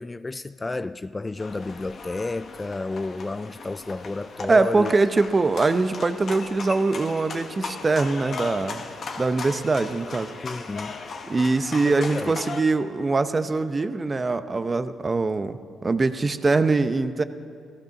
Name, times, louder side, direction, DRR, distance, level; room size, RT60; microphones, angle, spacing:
voice 1, 0.0-4.9 10.4-11.0 11.8-12.3, left 3 dB, 20° left, 0.3 m, -31 dB
sound 1, 1.4-12.6, left 4 dB, 50° left, 1.3 m, -37 dB
voice 2, 4.5-8.9 9.2-10.3 11.3-17.2, right 3 dB, 25° right, 0.7 m, -23 dB
15.0 x 15.0 x 5.9 m
cardioid pair, 90°, 0 cm